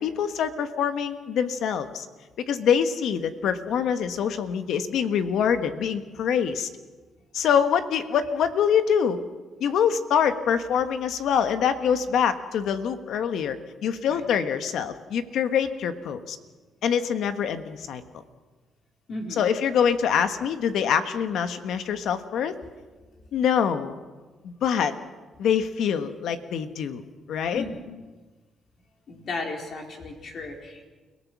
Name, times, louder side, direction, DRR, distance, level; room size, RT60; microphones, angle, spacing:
voice 1, 0.0-2.1 2.5-6.7 7.3-9.2 9.6-16.4 16.8-18.0 19.3-22.5 23.3-23.9 24.4-24.9 25.4-27.0 27.3-27.6, left 7 dB, 75° left, 9 dB, 1.5 m, -25 dB
voice 2, 19.1-19.4 27.5-27.8 29.1-30.8, left 2 dB, 60° left, 1 dB, 4.4 m, -35 dB
29.5 x 17.5 x 6.2 m, 1.3 s
cardioid pair, 90°, 0 cm